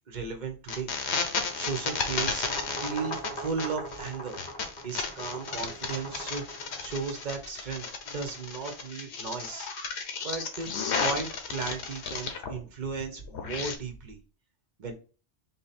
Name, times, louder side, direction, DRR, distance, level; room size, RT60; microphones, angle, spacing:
voice 1, 0.1-0.9 1.3-4.4 4.8-9.7 10.2-10.7 11.0-14.2 14.8-14.9, right 5 dB, 45° right, 5 dB, 0.9 m, -36 dB
sound 1, 0.7-12.6 12.9-13.8, left 5 dB, 75° left, 1.0 m, -33 dB
sound 2, 1.4-7.2, equal, 40° left, 1.7 m, -41 dB
3.8 x 2.7 x 4.1 m, 0.37 s
omnidirectional pair, 1.1 m